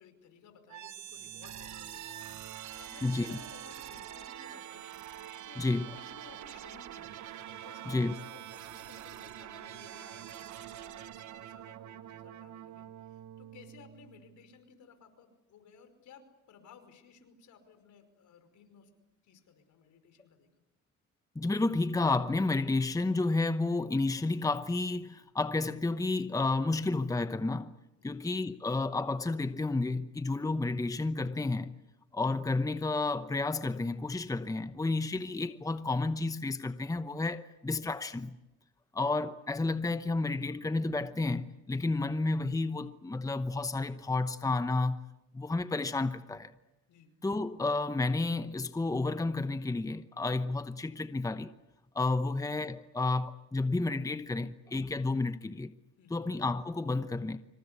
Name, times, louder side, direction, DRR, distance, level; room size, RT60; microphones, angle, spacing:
voice 1, 0.0-4.9 5.4-7.1 7.5-18.9 19.2-20.5 28.0-28.2 46.9-47.1 52.2-52.4 56.0-56.2, left 6 dB, 75° left, 5.2 m, -57 dB
sound 1, 0.7-14.6, right 11 dB, 75° right, 1.2 m, -45 dB
voice 2, 3.0-3.4 5.6-5.8 7.9-8.1 21.3-27.7 28.0-31.7 32.1-38.4 38.9-45.0 45.3-46.5 47.2-51.5 51.9-55.7 56.1-57.4, left 3 dB, 10° left, 0.9 m, -31 dB
26.0 x 25.0 x 8.3 m
cardioid pair, 90°, 30 cm